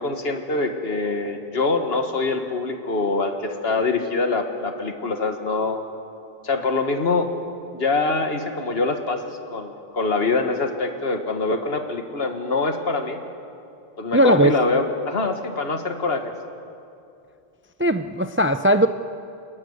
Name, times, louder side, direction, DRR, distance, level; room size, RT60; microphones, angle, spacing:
voice 1, 0.0-5.8 6.4-7.3 7.7-13.2 14.0-16.3, left 3 dB, 70° left, 6 dB, 1.9 m, -24 dB
voice 2, 14.1-14.6 17.8-18.9, right 1 dB, 15° right, 9 dB, 0.4 m, -18 dB
29.0 x 13.0 x 9.6 m, 2.6 s
omnidirectional pair, 1.1 m